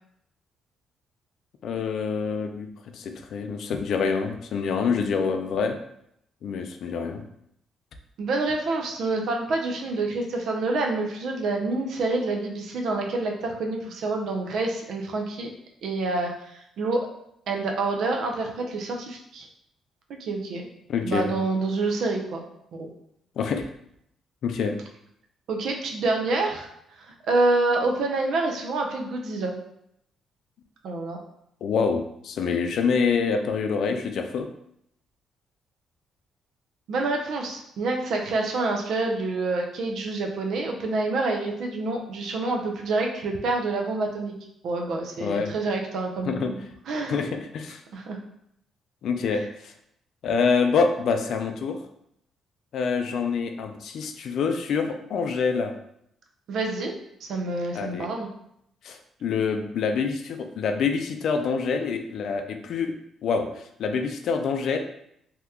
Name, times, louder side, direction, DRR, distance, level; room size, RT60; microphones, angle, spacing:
voice 1, 1.6-5.8 6.4-7.2 20.9-21.3 23.4-23.7 24.4-24.8 31.6-34.5 45.2-45.5 46.3-46.5 47.1-47.8 49.0-49.7 50.2-51.9 52.7-55.7 57.7-58.1 58.8-62.9 63.2-64.8, left 5 dB, 70° left, 6 dB, 0.3 m, -26 dB
voice 2, 8.2-15.5 15.8-17.1 17.5-19.5 20.2-20.7 21.0-22.4 22.7-22.9 25.5-26.7 27.0-29.6 30.8-31.2 36.9-44.3 44.6-46.6 46.9-47.2 47.9-48.2 49.3-49.4 56.5-56.9 57.2-58.3, right 3 dB, 70° right, 2 dB, 0.5 m, -27 dB
2.8 x 2.2 x 3.5 m, 0.74 s
cardioid pair, 90°, 0 cm